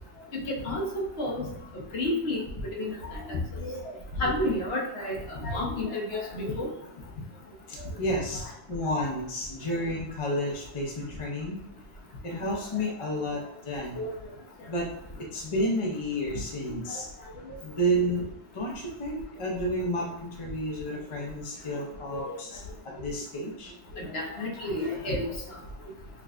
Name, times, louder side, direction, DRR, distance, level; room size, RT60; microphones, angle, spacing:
voice 1, 0.5-1.5 1.9-2.4 2.8-3.9 4.2-6.7 12.4-12.5 14.0-14.1 22.1-22.3 24.0-25.3, left 1 dB, 60° left, -2 dB, 1.1 m, -31 dB
voice 2, 7.7-11.6 12.2-14.0 14.7-14.9 15.2-17.1 17.6-23.7, equal, 35° left, -1 dB, 0.6 m, -31 dB
5.9 x 2.3 x 2.4 m, 0.77 s
omnidirectional pair, 1.3 m